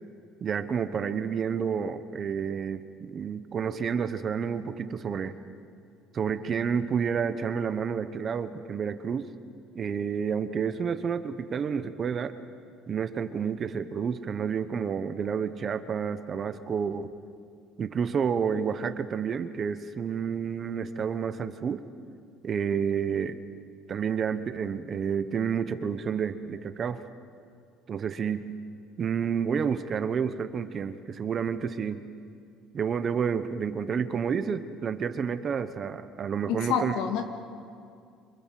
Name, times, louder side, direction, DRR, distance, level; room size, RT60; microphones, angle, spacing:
voice 1, 0.4-5.4 6.1-9.3 9.7-12.3 12.9-17.1 17.8-21.8 22.4-23.4 23.9-27.0 27.9-28.5 29.0-32.0 32.7-37.0, right 7 dB, 30° right, 11 dB, 1.1 m, -30 dB
voice 2, 36.5-37.2, left 7 dB, 75° left, 5 dB, 2.6 m, -28 dB
28.0 x 25.5 x 7.7 m, 2.4 s
cardioid pair, 150°, 0 cm